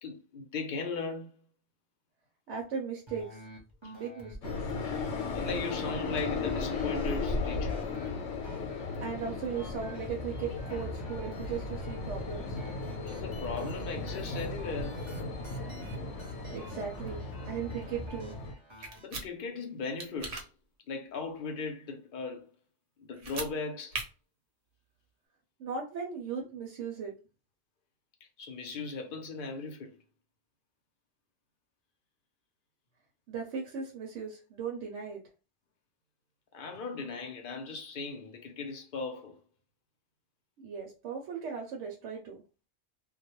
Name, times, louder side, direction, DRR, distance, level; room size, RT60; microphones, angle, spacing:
voice 1, 0.0-1.4 3.8-3.9 5.3-7.9 13.0-15.1 18.8-20.5 20.9-22.5 23.0-24.0 28.4-30.0 36.5-39.4, left 4 dB, 55° left, 0.7 m, -38 dB
voice 2, 2.5-3.4 3.9-4.7 9.0-12.6 16.5-18.3 25.6-27.1 33.3-35.2 40.6-42.4, right 6 dB, 80° right, 0.9 m, -37 dB
sound 1, 3.1-19.1, left 1 dB, 25° right, 0.8 m, -47 dB
sound 2, 4.4-18.5, left 3 dB, 90° left, 1.0 m, -36 dB
sound 3, 18.8-19.3 20.0-20.4 23.1-23.5 23.9-24.0, right 3 dB, 55° right, 0.8 m, -37 dB
2.3 x 2.1 x 2.9 m
omnidirectional pair, 1.2 m